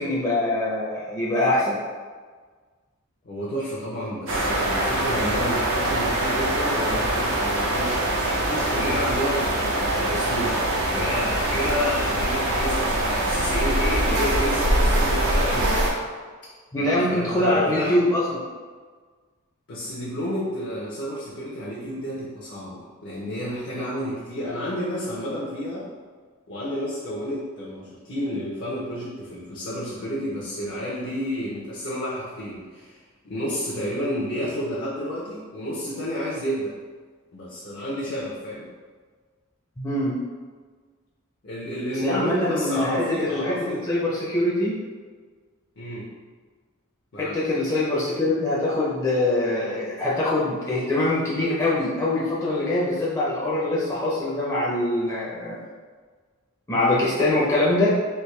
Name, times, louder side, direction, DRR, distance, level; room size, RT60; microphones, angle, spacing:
voice 1, 0.0-1.8 13.4-13.5 16.7-18.4 39.8-40.2 42.0-43.5 43.9-44.8 47.2-55.6 56.7-58.0, left 1 dB, 15° left, -7 dB, 0.5 m, -23 dB
voice 2, 3.2-8.0 8.3-15.7 16.8-17.9 19.7-25.9 26.5-33.0 33.2-36.7 37.3-38.7 41.4-43.8 45.8-46.1 47.1-47.4, equal, 60° left, -6 dB, 0.6 m, -30 dB
sound 1, 4.3-15.9, right 1 dB, 85° right, 0.6 m, -23 dB
3.5 x 2.5 x 3.1 m, 1.5 s
head